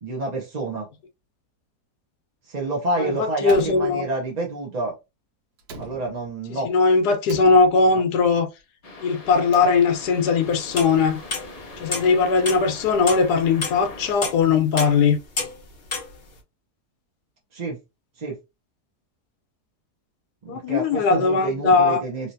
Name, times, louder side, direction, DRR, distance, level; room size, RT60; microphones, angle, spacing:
voice 1, 0.0-0.9 2.5-4.9 5.8-6.7 17.5-17.8 18.2-18.4 20.4-22.3, right 2 dB, 35° right, 0.7 m, -28 dB
voice 2, 3.0-4.1 6.6-8.5 9.0-11.2 11.8-15.2 20.5-22.0, left 4 dB, 85° left, 1.3 m, -19 dB
Slam, 3.4-4.6 5.6-6.5 7.3-8.2 9.3-10.2, right 4 dB, 80° right, 1.3 m, -42 dB
sound 1, 8.8-14.1, left 2 dB, 65° left, 0.3 m, -41 dB
sound 2, 10.5-11.5 11.9-12.2 12.5-13.3 13.6-13.9 14.2-15.0 15.4-16.2, left 3 dB, 40° left, 0.8 m, -29 dB
3.1 x 2.9 x 2.6 m
omnidirectional pair, 1.7 m